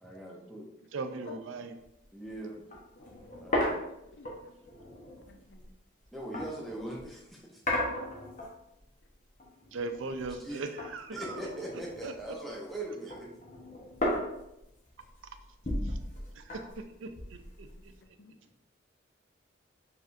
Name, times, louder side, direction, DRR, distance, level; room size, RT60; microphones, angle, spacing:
voice 1, 0.0-0.7 2.1-2.6 3.4-3.7 6.1-7.6 10.4-10.6 11.1-13.3, right 1 dB, ahead, -2 dB, 0.7 m, -40 dB
voice 2, 0.9-1.7 9.7-11.4 12.0-12.1 15.8-16.0 16.4-17.7, right 3 dB, 85° right, 8 dB, 0.4 m, -39 dB
sound 1, 1.8-2.0 2.3-2.4 2.7-7.1 7.6-8.8 9.1-10.5 10.8-12.5 12.8-18.0, left 1 dB, 40° left, 1.0 m, -36 dB
voice 3, 3.0-3.4 4.1-4.5 5.3-5.6 17.7-18.4, left 4 dB, 60° left, 5 dB, 0.5 m, -54 dB
4.8 x 3.4 x 2.6 m, 0.85 s
head